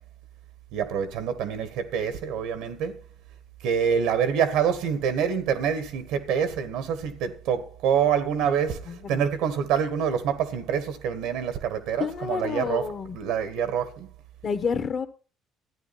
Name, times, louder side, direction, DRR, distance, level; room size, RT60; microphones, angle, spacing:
voice 1, 0.7-2.9 3.6-14.1, right 8 dB, 85° right, 1.6 m, -26 dB
voice 2, 8.9-9.2 12.0-13.2 14.4-15.1, left 6 dB, 45° left, 1.4 m, -29 dB
13.5 x 9.8 x 4.3 m
cardioid pair, 110°, 0 cm